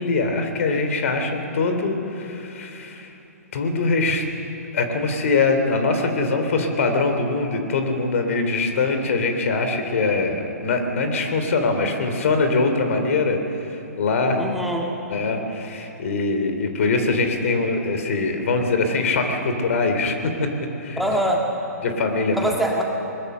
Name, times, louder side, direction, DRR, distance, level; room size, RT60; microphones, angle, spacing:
voice 1, 0.0-3.1 3.5-4.2 4.7-14.4 15.1-20.5 20.8-21.2 21.8-22.5, left 3 dB, 55° left, 6 dB, 3.0 m, -23 dB
voice 2, 14.4-14.9 21.0-21.4 22.3-22.8, equal, ahead, -2 dB, 1.9 m, -23 dB
21.0 x 20.5 x 6.7 m, 2.9 s
figure-of-eight pair, 130°, 9 cm